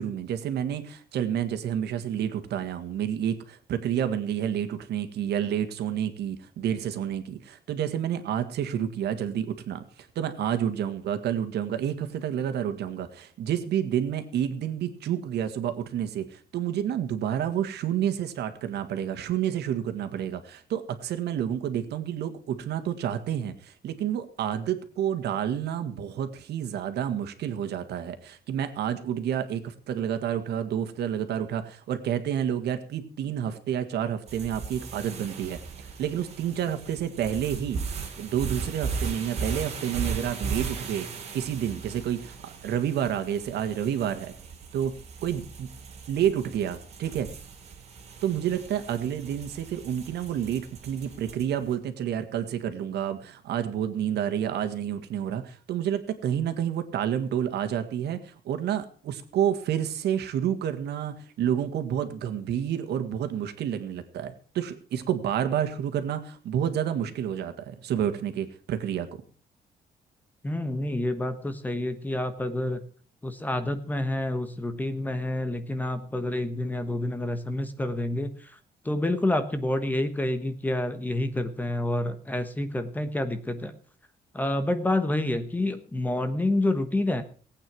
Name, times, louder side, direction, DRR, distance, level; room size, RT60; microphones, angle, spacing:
voice 1, 0.0-37.8 38.2-41.1 41.3-44.3 44.7-44.9 45.2-45.7 46.1-47.3 48.2-69.2, right 9 dB, 80° right, 8 dB, 1.9 m, -29 dB
sound 1, 34.3-51.6, right 5 dB, 40° right, 3.1 m, -37 dB
voice 2, 70.4-72.9 73.2-78.5 78.8-83.7 84.3-87.2, left 1 dB, 10° left, 10 dB, 1.1 m, -28 dB
18.5 x 8.9 x 6.1 m, 0.41 s
cardioid pair, 180°, 17 cm